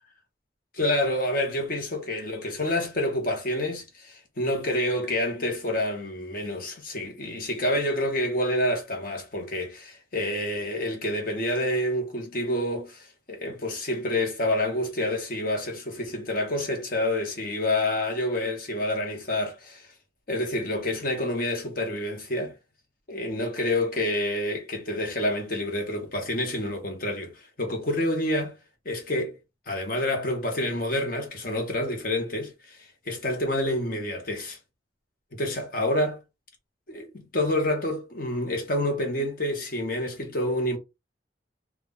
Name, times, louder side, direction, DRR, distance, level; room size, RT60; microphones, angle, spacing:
voice 1, 0.8-19.9 20.3-22.5 23.1-28.6 28.8-29.4 29.7-34.6 35.3-36.2 36.9-40.8, left 1 dB, 50° left, 0.8 m, -28 dB
2.2 x 2.0 x 3.5 m
head